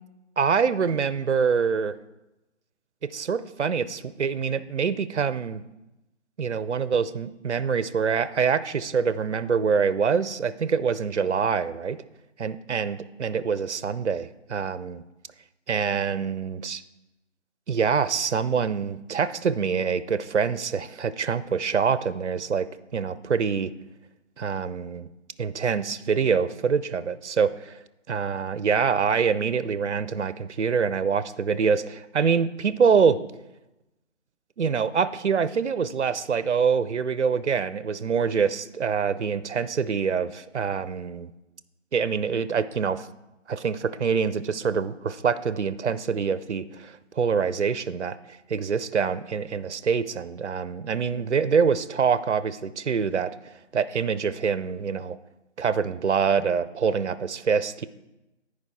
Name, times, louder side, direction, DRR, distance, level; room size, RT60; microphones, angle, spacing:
voice 1, 0.4-2.0 3.0-5.6 6.4-12.0 12.4-15.0 15.7-16.8 17.7-22.7 22.9-23.7 24.4-25.1 25.4-27.8 28.1-33.2 34.6-41.3 41.9-43.1 43.5-48.2 48.5-53.3 53.7-55.2 55.6-57.9, right 6 dB, 65° right, 15 dB, 0.5 m, -25 dB
14.5 x 4.8 x 3.6 m, 0.95 s
figure-of-eight pair, 175°, 37 cm